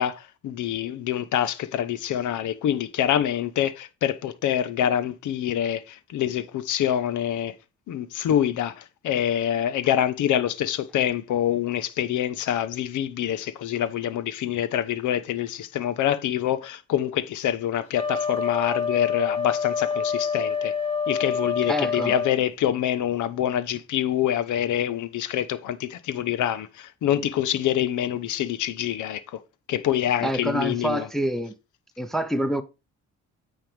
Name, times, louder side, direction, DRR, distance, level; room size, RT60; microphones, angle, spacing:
voice 1, 0.0-7.5 7.9-20.7 21.1-29.4 29.7-31.1, left 10 dB, 75° left, 0.9 m, -26 dB
Wind instrument woodwind instrument, 17.9-22.4, left 5 dB, 20° left, 5.0 m, -27 dB
voice 2, 21.7-22.1 30.2-31.5 32.0-32.6, right 1 dB, ahead, 0.8 m, -26 dB
8.9 x 5.6 x 3.4 m
cardioid pair, 90°, 30 cm